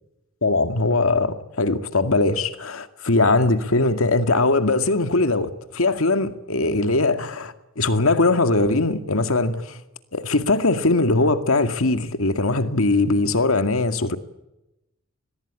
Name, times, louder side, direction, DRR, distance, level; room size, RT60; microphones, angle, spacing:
voice 1, 0.4-9.8 10.1-14.2, left 2 dB, 85° left, 2.1 m, -21 dB
23.5 x 21.0 x 9.9 m
head